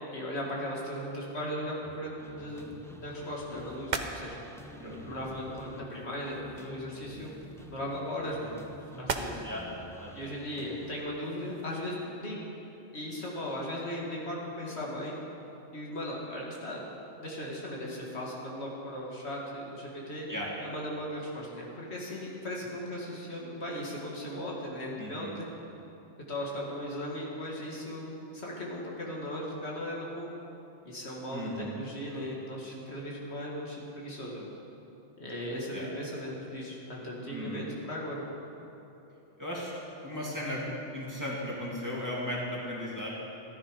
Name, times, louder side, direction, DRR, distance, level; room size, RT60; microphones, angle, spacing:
voice 1, 0.1-2.7 3.0-4.4 4.8-7.3 7.7-8.6 8.9-9.4 10.1-12.4 12.9-15.1 15.7-16.8 17.2-20.3 20.6-25.5 26.3-30.3 30.8-34.5 35.2-38.2, equal, 70° left, -3 dB, 2.4 m, -37 dB
sound 1, 1.8-11.0, left 1 dB, 5° left, 0.5 m, -50 dB
sound 2, 2.5-11.8, right 4 dB, 45° right, 0.8 m, -43 dB
voice 2, 4.8-5.1 9.3-9.6 10.0-10.3 20.3-20.5 25.0-25.3 31.3-31.7 35.7-35.9 37.3-37.6 39.4-39.7 40.0-40.6 40.9-43.1, left 1 dB, 15° right, -5 dB, 2.3 m, -36 dB
14.0 x 12.0 x 5.2 m, 2.9 s
omnidirectional pair, 1.2 m